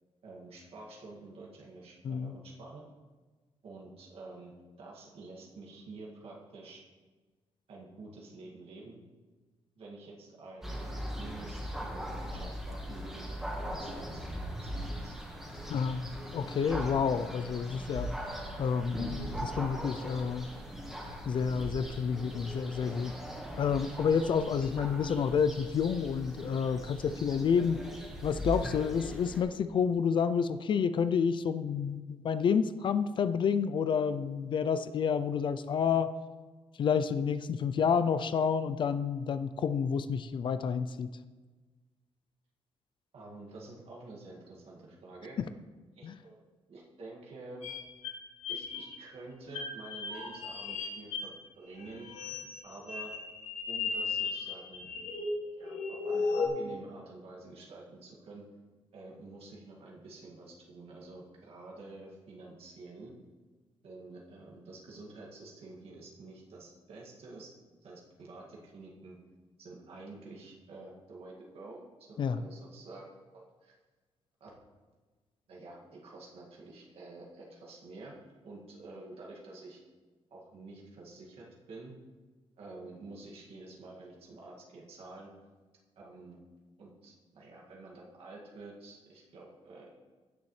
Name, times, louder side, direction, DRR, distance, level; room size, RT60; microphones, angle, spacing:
voice 1, 0.2-2.8 3.6-4.5 4.8-6.8 7.7-9.0 9.8-15.2 15.6-15.7 43.1-45.4 45.9-46.4 46.7-47.7 48.5-52.1 52.6-53.1 53.7-54.9 55.6-58.5 58.9-63.1 63.8-67.5 67.8-69.2 69.6-73.1 73.3-73.7 74.4-74.5 75.5-78.2 78.4-79.8 80.3-81.9 82.6-85.3 86.0-86.4 86.8-90.0, right 2 dB, 60° right, -3 dB, 2.1 m, -49 dB
sound 1, 10.6-29.4, equal, 5° right, 1.5 m, -40 dB
voice 2, 15.7-16.1 16.3-18.1 18.6-19.0 19.4-20.5 21.3-23.1 23.6-27.8 28.2-36.1 36.8-41.1 46.0-46.2 72.2-72.4, left 6 dB, 45° left, 12 dB, 0.4 m, -29 dB
sound 2, 47.6-49.0 49.5-51.3 51.8-56.5, left 4 dB, 85° left, 1.6 m, -35 dB
16.0 x 6.9 x 3.2 m, 1.3 s
wide cardioid pair, 165°, 11 cm